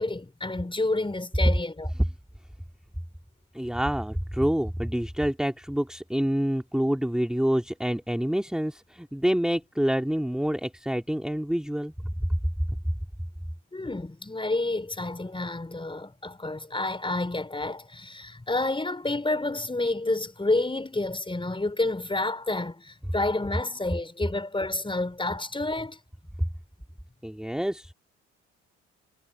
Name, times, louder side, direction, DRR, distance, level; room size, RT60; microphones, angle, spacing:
voice 1, 0.0-1.9 13.7-26.0, left 2 dB, 15° left, 5.2 m, -29 dB
voice 2, 3.5-11.9 12.2-12.3 27.2-27.9, equal, ahead, 2.6 m, -27 dB
hypercardioid pair, 50°, 35 cm